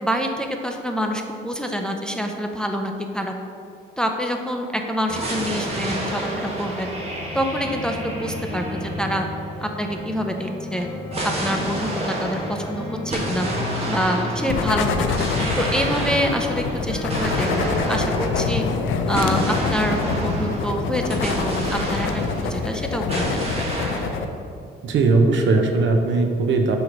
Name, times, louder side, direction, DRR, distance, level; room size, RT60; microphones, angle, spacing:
voice 1, 0.0-3.3 4.0-6.9 7.3-9.3 9.6-10.9 11.4-13.5 13.9-15.2 15.6-18.6 19.1-22.2 22.5-23.5, equal, 5° left, 3 dB, 0.5 m, -26 dB
sound 1, 5.1-9.8 11.1-22.7 23.1-24.2, right 1 dB, 30° right, 1.5 m, -29 dB
sound 2, 7.2-18.7, left 2 dB, 25° left, 0.9 m, -33 dB
sound 3, 14.5-24.3, left 5 dB, 80° left, 0.5 m, -26 dB
voice 2, 24.8-26.8, right 3 dB, 70° right, 4 dB, 0.7 m, -19 dB
6.3 x 3.1 x 5.2 m, 2.4 s
cardioid pair, 90°, 20 cm